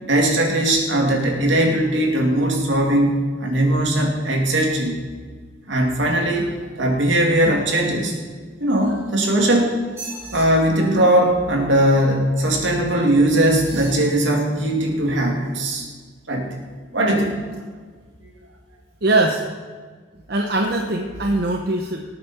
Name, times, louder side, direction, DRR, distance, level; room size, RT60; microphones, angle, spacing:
voice 1, 0.0-5.0 5.7-6.5 6.8-8.1 8.6-9.8 10.3-15.8 16.3-16.5 16.9-17.3 18.2-18.3, right 1 dB, 75° right, 1 dB, 2.5 m, -19 dB
sound 1, 8.7-9.4 9.8-10.4 12.3-12.7 13.5-14.0 14.7-14.8, right 3 dB, 15° right, 5.0 m, -39 dB
voice 2, 19.0-19.4 20.3-22.0, right 2 dB, 55° right, 3 dB, 0.9 m, -21 dB
18.5 x 9.2 x 4.3 m, 1.5 s
head